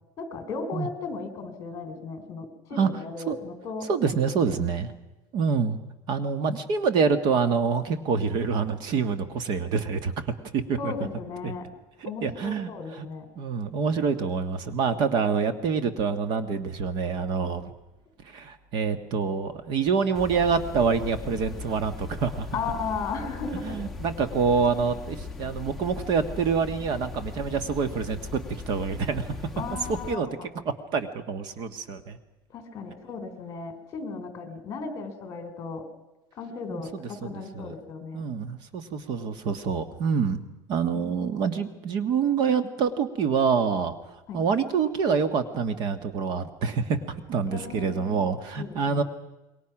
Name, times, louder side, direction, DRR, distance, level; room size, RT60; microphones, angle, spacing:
voice 1, 0.2-3.9 4.5-4.6 10.8-11.7 12.1-13.3 22.5-23.9 29.6-30.5 32.5-35.9 36.4-38.2 40.9-41.3 44.3-44.4 47.5-48.2 48.6-49.0, left 4 dB, 30° left, 8 dB, 3.8 m, -36 dB
voice 2, 3.9-4.9 5.3-5.8 6.1-10.1 10.5-10.9 12.0-13.1 13.4-17.7 18.2-22.5 23.6-29.3 30.1-30.3 30.9-32.2 36.7-36.8 37.2-37.7 38.1-40.4 40.7-43.9 44.3-49.0, right 5 dB, 45° right, 11 dB, 1.6 m, -26 dB
sound 1, 20.1-30.1, left 4 dB, ahead, 1.3 m, -39 dB
27.5 x 22.5 x 6.1 m, 1.0 s
cardioid pair, 165°, 10 cm